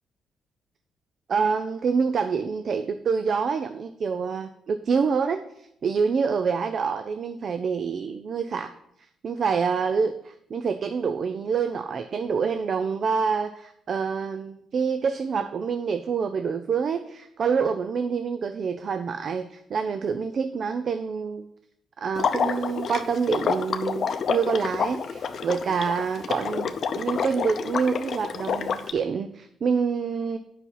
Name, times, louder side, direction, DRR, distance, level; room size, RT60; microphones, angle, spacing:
voice 1, 1.3-8.7 9.2-21.5 22.0-30.4, right 5 dB, 55° right, 9 dB, 0.5 m, -27 dB
Water / Liquid, 22.1-28.9, left 6 dB, 55° left, 0.7 m, -28 dB
8.2 x 5.8 x 5.7 m, 0.76 s
cardioid pair, 100°, 0 cm